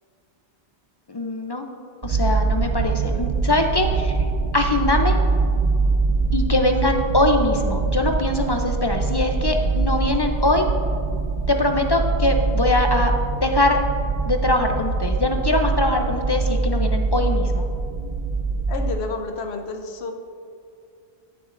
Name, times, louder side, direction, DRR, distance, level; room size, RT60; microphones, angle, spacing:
voice 1, 1.1-1.7 2.0-4.1 4.5-5.2 6.3-10.7 11.5-13.1 13.4-13.8 14.2-17.6, left 2 dB, 40° left, 4 dB, 0.3 m, -22 dB
sound 1, 2.0-18.9, right 3 dB, 50° right, 0.5 m, -23 dB
voice 2, 18.7-20.1, left 3 dB, 70° left, 5 dB, 1.0 m, -30 dB
13.0 x 7.1 x 2.5 m, 2.4 s
omnidirectional pair, 1.1 m